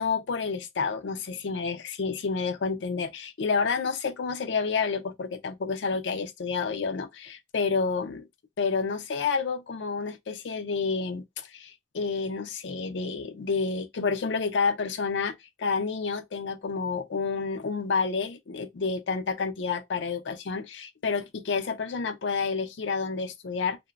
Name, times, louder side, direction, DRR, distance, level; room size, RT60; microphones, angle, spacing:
voice 1, 0.0-8.3 8.6-23.8, left 5 dB, 90° left, 0.5 m, -29 dB
2.9 x 2.1 x 2.4 m
head